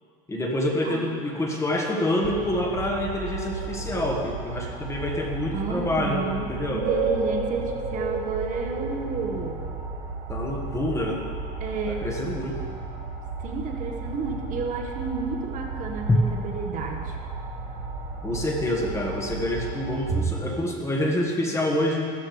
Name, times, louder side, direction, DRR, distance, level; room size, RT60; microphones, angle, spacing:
voice 1, 0.3-6.9 10.3-11.2 11.9-12.6 16.1-16.2 18.2-22.1, left 1 dB, 15° left, 0 dB, 1.5 m, -27 dB
sound 1, 2.2-20.3, right 3 dB, 80° right, 2.0 m, -33 dB
voice 2, 5.5-9.6 11.6-12.0 13.4-17.2, right 5 dB, 45° right, 2 dB, 1.4 m, -31 dB
15.5 x 13.5 x 3.3 m, 2.2 s
cardioid pair, 135°, 19 cm